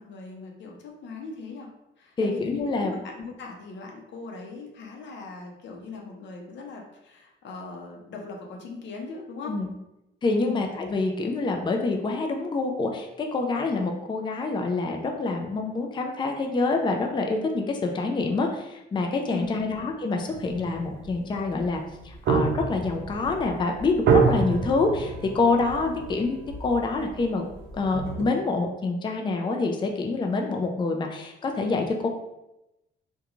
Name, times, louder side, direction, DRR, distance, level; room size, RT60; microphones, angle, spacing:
voice 1, 0.0-1.7 2.0-9.6 10.4-10.6 19.3-19.7 25.8-25.9, left 4 dB, 65° left, 1 dB, 0.6 m, -39 dB
voice 2, 2.2-2.9 9.5-9.7 10.2-27.4 27.7-32.1, left 3 dB, 25° left, 2 dB, 0.4 m, -26 dB
sound 1, 20.3-28.2, right 5 dB, 70° right, 0.5 m, -28 dB
2.4 x 2.2 x 2.9 m, 0.90 s
cardioid pair, 90°, 20 cm